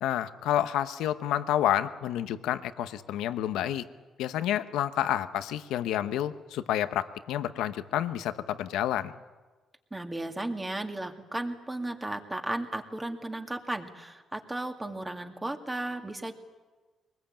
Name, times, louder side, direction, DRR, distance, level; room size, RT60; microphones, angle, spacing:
voice 1, 0.0-3.9 4.2-9.1, left 11 dB, 90° left, 11 dB, 0.9 m, -29 dB
voice 2, 9.9-16.3, right 2 dB, 15° right, 5 dB, 2.3 m, -35 dB
24.0 x 20.5 x 8.9 m, 1.3 s
cardioid pair, 90°, 0 cm